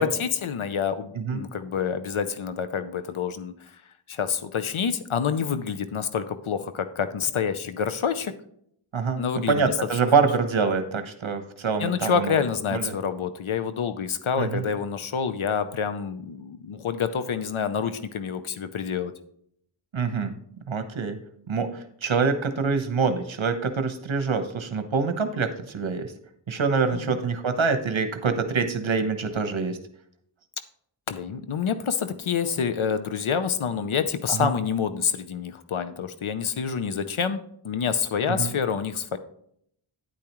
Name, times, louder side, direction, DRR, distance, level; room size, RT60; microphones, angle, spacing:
voice 1, 0.0-3.5 4.1-8.3 9.2-10.0 10.3-10.4 11.8-19.1 26.9-27.2 31.1-37.4 37.6-39.2, left 7 dB, 75° left, 11 dB, 0.7 m, -27 dB
voice 2, 9.5-12.4 12.7-12.9 14.4-14.6 19.9-20.3 20.7-21.2 21.5-26.1 26.5-29.8 34.3-34.5 38.3-38.5, right 5 dB, 65° right, 8 dB, 1.0 m, -25 dB
9.4 x 8.5 x 3.0 m, 0.68 s
wide cardioid pair, 70°, 50 cm